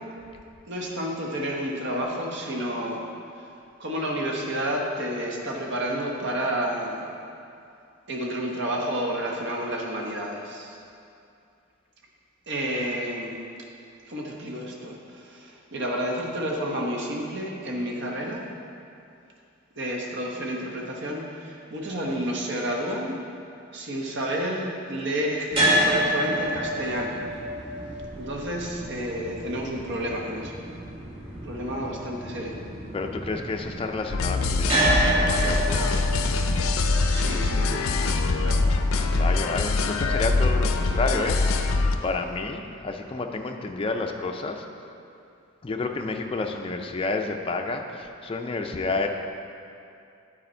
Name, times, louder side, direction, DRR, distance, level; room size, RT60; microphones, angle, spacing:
voice 1, 0.7-3.1 3.4-3.5 3.8-7.1 8.1-10.7 12.5-13.4 14.1-18.4 19.8-23.2 23.7-27.2 28.2-30.5 31.4-32.6 37.1-37.9 38.4-38.7 40.9-41.3, equal, 60° right, -1 dB, 1.0 m, -30 dB
sound 1, 25.5-41.7, right 1 dB, 30° right, 1.4 m, -30 dB
voice 2, 32.9-36.1 39.1-41.7 42.0-44.6 45.6-49.1, left 3 dB, 25° left, 4 dB, 0.4 m, -30 dB
sound 2, 34.1-41.9, left 3 dB, 85° left, 0.4 m, -23 dB
9.3 x 4.3 x 4.3 m, 2.6 s
head